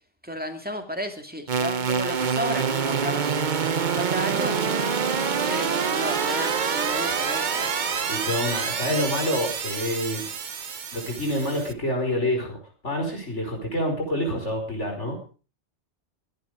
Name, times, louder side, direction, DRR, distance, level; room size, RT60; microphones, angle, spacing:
voice 1, 0.2-3.5 3.9-4.9 5.3-7.7, equal, 10° right, 5 dB, 2.3 m, -33 dB
sound 1, 1.5-11.7, right 6 dB, 45° right, 1.0 m, -26 dB
voice 2, 8.1-10.3 10.9-12.6 12.8-15.2, left 1 dB, 80° left, 2 dB, 5.5 m, -27 dB
22.5 x 10.5 x 5.0 m, 0.37 s
omnidirectional pair, 1.2 m